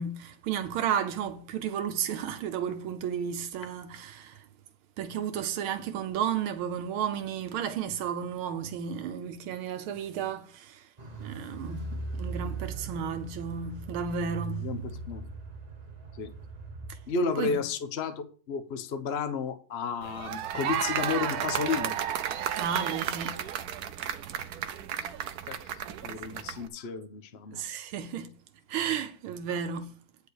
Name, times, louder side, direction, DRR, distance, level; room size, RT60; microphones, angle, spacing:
voice 1, 0.0-4.4 5.0-10.9 11.2-14.6 16.9-17.0 17.4-17.6 22.6-23.4 27.5-28.3 28.7-29.9, right 8 dB, 85° right, 1.6 m, -33 dB
Car, 11.0-17.2 17.4-17.5, right 4 dB, 35° right, 0.6 m, -39 dB
voice 2, 17.1-22.0 25.5-27.7, left 5 dB, 45° left, 0.9 m, -32 dB
sound 1, 20.0-26.7, right 9 dB, 70° right, 0.9 m, -33 dB
9.4 x 5.1 x 6.4 m
omnidirectional pair, 2.3 m